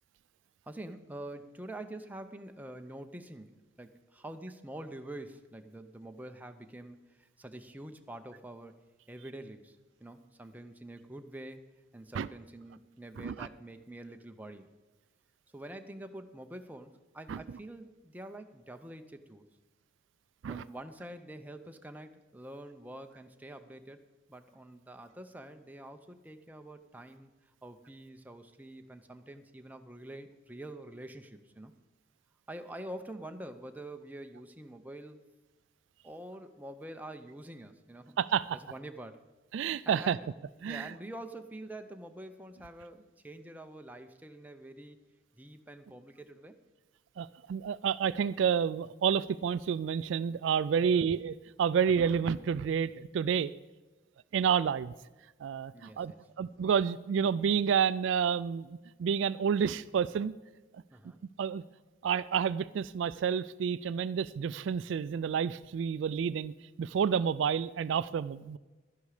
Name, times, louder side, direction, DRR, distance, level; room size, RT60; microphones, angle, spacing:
voice 1, 0.7-8.8 9.1-11.6 11.9-14.7 15.5-19.5 20.5-24.0 24.3-27.3 27.6-31.7 32.5-35.2 36.0-38.2 38.5-39.2 39.9-40.3 40.6-45.0 45.4-46.6 50.8-51.1 55.7-56.3 60.9-61.2, right 1 dB, 10° right, 6 dB, 0.6 m, -46 dB
voice 2, 38.2-38.6 39.5-40.2 40.6-40.9 47.2-53.5 54.3-54.9 55.4-56.1 56.4-60.3 61.4-61.6 62.0-66.5 66.8-68.6, right 7 dB, 70° right, 16 dB, 0.3 m, -29 dB
11.5 x 10.5 x 4.9 m, 1.2 s
head